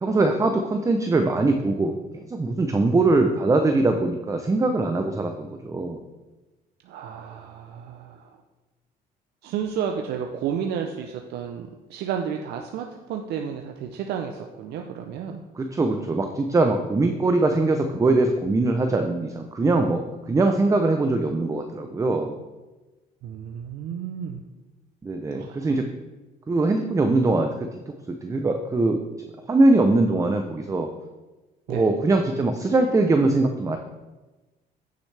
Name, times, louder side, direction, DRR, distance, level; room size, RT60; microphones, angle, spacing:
voice 1, 0.0-2.0 2.3-6.0 15.6-20.0 20.3-22.3 25.0-25.9 26.5-27.5 28.2-29.0 29.5-30.9 31.7-33.8, right 2 dB, 20° right, 5 dB, 0.6 m, -22 dB
voice 2, 6.8-8.3 9.4-15.4 23.2-24.4 25.3-25.7 31.7-32.0, right 8 dB, 75° right, 3 dB, 0.6 m, -32 dB
9.3 x 6.6 x 3.3 m, 1.1 s
cardioid pair, 110°, 17 cm